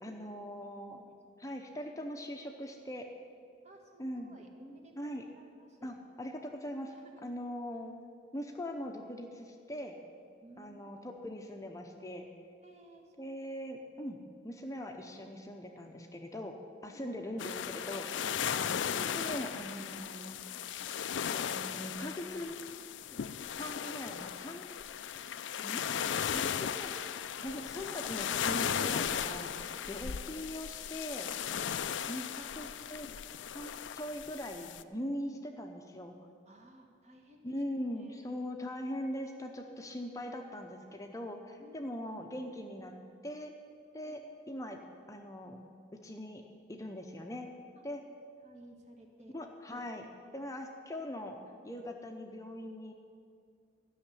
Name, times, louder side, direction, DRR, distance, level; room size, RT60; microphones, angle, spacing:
voice 1, 0.0-1.0 1.4-3.1 4.0-4.4 5.0-5.2 5.8-6.9 7.2-7.9 8.3-10.0 10.6-12.3 13.2-14.2 14.4-16.6 16.8-20.4 21.3-22.6 23.6-24.7 25.6-25.9 26.3-26.9 27.4-31.5 32.1-33.1 33.5-36.1 37.4-42.9 43.2-43.5 43.9-44.2 44.5-44.8 45.1-45.6 45.9-46.4 46.7-47.5 47.8-48.0 49.3-50.1 50.3-51.4 51.6-52.9, left 1 dB, 20° left, 3 dB, 0.8 m, -41 dB
voice 2, 0.7-1.5 3.6-6.0 6.9-7.3 10.4-11.1 12.6-13.4 16.8-17.1 20.5-20.7 23.0-23.2 29.8-29.9 31.7-32.4 36.4-38.3 39.6-40.1 41.6-42.0 44.0-44.2 47.8-47.9 48.4-49.4, right 1 dB, 40° right, 2 dB, 1.5 m, -58 dB
sound 1, 17.4-34.8, left 8 dB, 90° left, 0.4 m, -36 dB
13.0 x 6.5 x 9.9 m, 2.2 s
head